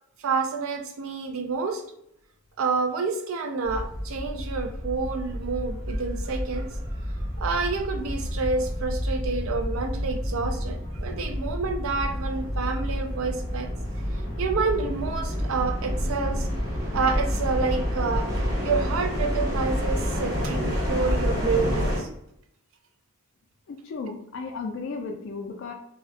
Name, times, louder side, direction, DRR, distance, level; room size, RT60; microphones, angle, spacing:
voice 1, 0.2-1.8 2.6-6.7 7.4-13.7 14.4-16.5 16.9-18.3 18.6-22.1, right 4 dB, 75° right, 5 dB, 0.4 m, -28 dB
sound 1, 3.7-22.0, equal, 50° right, 1.1 m, -29 dB
voice 2, 23.7-25.7, left 4 dB, 60° left, 2 dB, 0.3 m, -34 dB
2.4 x 2.2 x 2.3 m, 0.76 s
head